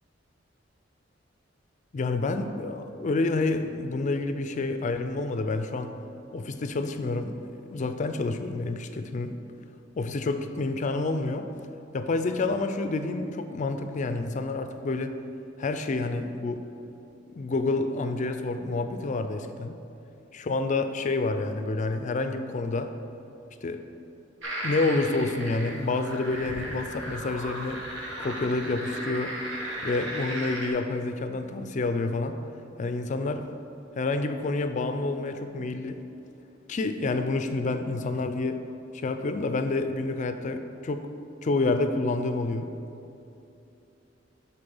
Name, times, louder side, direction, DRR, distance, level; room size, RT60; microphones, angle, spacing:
voice 1, 1.9-5.9 6.3-9.4 10.0-11.5 11.9-15.1 15.6-16.7 17.3-19.8 20.3-22.9 23.6-23.8 24.6-27.8 28.2-29.3 29.8-32.4 32.8-33.5 34.0-36.0 36.7-38.6 38.9-41.1 41.4-42.7, left 3 dB, 40° left, 8 dB, 0.4 m, -28 dB
sound 1, 24.4-30.7, right 1 dB, 85° right, 1.3 m, -36 dB
6.9 x 4.1 x 5.3 m, 2.8 s
head